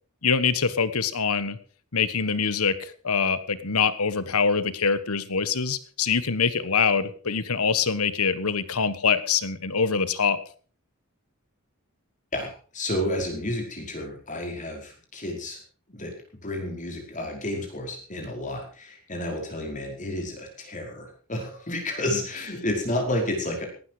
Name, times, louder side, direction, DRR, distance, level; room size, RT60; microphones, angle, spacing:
voice 1, 0.2-1.6 1.9-10.4, left 5 dB, 85° left, 14 dB, 1.3 m, -24 dB
voice 2, 12.3-15.6 15.9-16.1 16.4-23.6, left 1 dB, 35° left, 2 dB, 5.1 m, -31 dB
18.0 x 12.5 x 4.9 m, 0.41 s
head